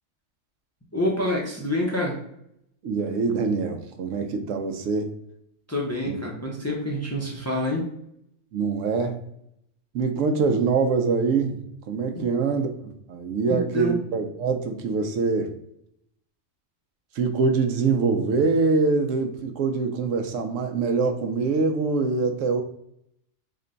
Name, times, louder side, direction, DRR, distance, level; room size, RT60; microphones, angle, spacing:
voice 1, 0.9-2.2 5.7-7.9 12.1-12.3 13.4-14.0, left 1 dB, 20° left, -2 dB, 0.5 m, -27 dB
voice 2, 2.8-5.1 6.1-6.2 8.5-9.2 9.9-15.6 17.1-22.6, right 4 dB, 85° right, 6 dB, 0.9 m, -24 dB
3.7 x 2.2 x 3.7 m, 0.76 s
omnidirectional pair, 1.3 m